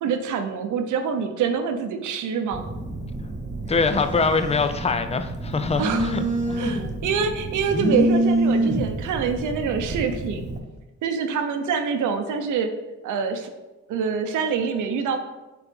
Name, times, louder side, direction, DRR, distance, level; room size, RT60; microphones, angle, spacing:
voice 1, 0.0-2.6 5.8-6.1 6.6-10.5 11.0-12.7 13.0-13.5 13.9-15.2, right 6 dB, 80° right, 6 dB, 0.8 m, -25 dB
Telephone, 2.5-10.6, right 1 dB, 25° right, 1.0 m, -27 dB
voice 2, 3.7-6.2 6.5-6.8, left 4 dB, 20° left, 9 dB, 0.5 m, -24 dB
4.7 x 4.1 x 5.3 m, 1.1 s
cardioid pair, 90°, 30 cm